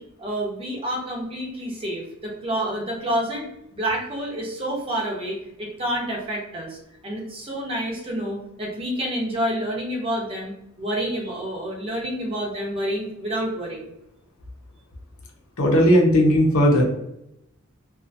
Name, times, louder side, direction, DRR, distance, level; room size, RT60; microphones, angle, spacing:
voice 1, 0.0-3.5 3.7-6.8 7.0-13.9, right 1 dB, 25° right, -2 dB, 0.7 m, -28 dB
voice 2, 15.6-16.8, equal, 80° left, 0 dB, 0.8 m, -16 dB
2.6 x 2.3 x 2.6 m, 0.83 s
head